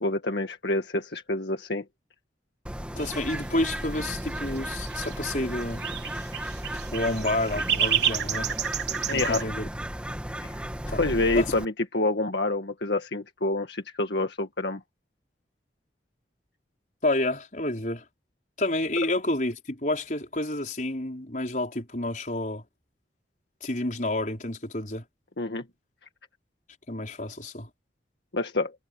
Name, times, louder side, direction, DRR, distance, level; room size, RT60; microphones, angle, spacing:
voice 1, 0.0-1.8 9.1-9.4 10.4-10.7 11.0-14.8 25.4-25.6 28.3-28.7, left 2 dB, 75° left, 1.8 m, -27 dB
Bird, 2.7-11.7, right 1 dB, 5° right, 1.8 m, -34 dB
voice 2, 3.0-5.8 6.7-8.5 9.1-9.7 10.9-11.0 11.4-11.5 17.0-18.1 18.6-22.6 23.6-25.0 26.9-27.7, left 2 dB, 45° left, 5.1 m, -29 dB
sound 1, 3.0-9.4, right 9 dB, 70° right, 4.1 m, -31 dB
head